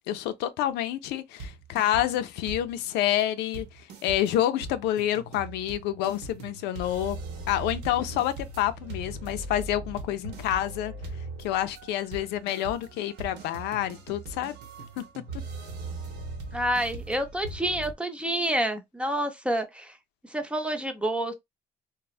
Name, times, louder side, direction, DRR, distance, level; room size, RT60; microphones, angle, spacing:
voice 1, 0.1-7.2 7.5-10.9 11.4-14.5 15.0-15.1, left 12 dB, 90° left, 0.4 m, -28 dB
sound 1, 1.4-2.2 2.5-2.9 3.2-3.3 3.5-17.9, right 2 dB, 80° right, 0.9 m, -40 dB
voice 2, 16.5-20.0 20.3-21.3, right 1 dB, 5° right, 0.5 m, -28 dB
3.2 x 2.0 x 2.4 m
cardioid pair, 110°, 17 cm